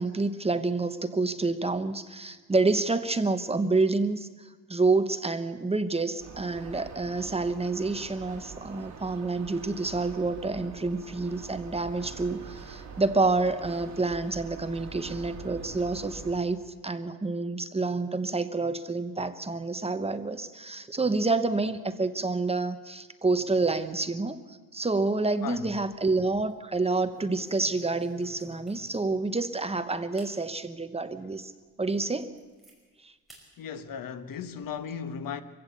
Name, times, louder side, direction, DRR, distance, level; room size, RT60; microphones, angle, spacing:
voice 1, 0.0-31.5 31.8-32.3 33.0-33.1, right 3 dB, 15° right, 1.0 m, -28 dB
sound 1, 6.2-16.4, right 5 dB, 55° right, 3.6 m, -44 dB
sound 2, 25.3-26.0 26.4-26.6 27.1-29.2 29.7-29.8 30.1-30.4 30.9-31.0 31.5-31.6 31.9-32.8 33.3-33.5 33.9-34.8, equal, ahead, 5.3 m, -54 dB
voice 2, 25.4-25.7 33.6-35.4, left 7 dB, 70° left, 1.3 m, -36 dB
24.0 x 15.5 x 8.3 m
cardioid pair, 140°, 35 cm